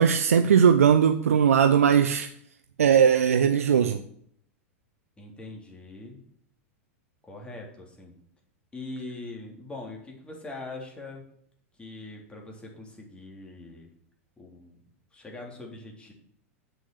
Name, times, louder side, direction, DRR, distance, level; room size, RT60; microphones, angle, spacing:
voice 1, 0.0-2.3 2.8-4.0, right 7 dB, 90° right, 0.7 m, -19 dB
voice 2, 5.2-6.2 7.2-8.1 8.7-11.3 11.8-13.9 14.4-14.8 15.1-16.1, left 2 dB, 15° left, 3.5 m, -42 dB
8.0 x 6.4 x 7.8 m
hypercardioid pair, 105°, 7 cm